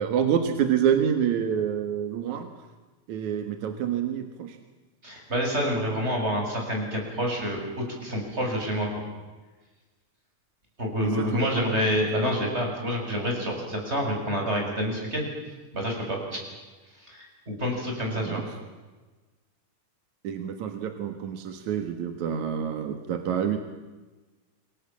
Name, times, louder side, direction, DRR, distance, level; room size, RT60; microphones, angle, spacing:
voice 1, 0.0-2.5 3.1-4.6 11.0-12.0 18.2-18.4 20.2-23.6, right 8 dB, 65° right, 7 dB, 2.8 m, -27 dB
voice 2, 5.0-8.9 10.8-15.3 15.7-16.4 17.0-18.4, equal, 15° right, 1 dB, 7.1 m, -28 dB
27.0 x 24.0 x 7.4 m, 1.3 s
omnidirectional pair, 3.9 m